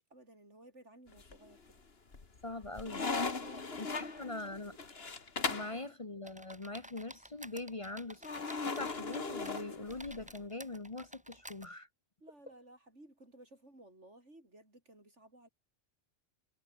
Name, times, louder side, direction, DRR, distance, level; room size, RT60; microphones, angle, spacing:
voice 1, 0.0-1.8 3.4-4.8 5.9-6.0 12.2-15.5, right 1 dB, 85° right, 8.0 m, -57 dB
sound 1, 1.1-1.7 2.1-5.8 8.2-10.3, left 4 dB, 60° left, 2.3 m, -38 dB
voice 2, 2.4-3.1 3.8-4.8 5.5-11.9, left 2 dB, 30° left, 1.2 m, -43 dB
sound 2, 6.2-9.2 9.4-11.7, right 1 dB, 5° right, 1.5 m, -52 dB
omnidirectional pair, 1.2 m